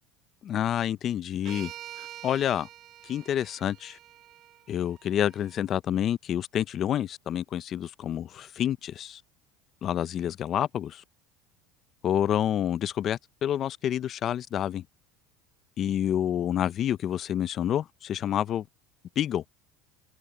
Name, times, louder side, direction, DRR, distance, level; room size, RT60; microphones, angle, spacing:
voice 1, 0.4-1.7 2.0-2.7 3.0-4.0 4.7-9.2 9.8-11.0 12.0-14.8 15.8-18.7 19.2-19.4, left 10 dB, 40° left, 0.5 m, -28 dB
sound 1, 1.4-5.6, right 13 dB, 45° right, 0.6 m, -46 dB
open air
supercardioid pair, 125°, 0 cm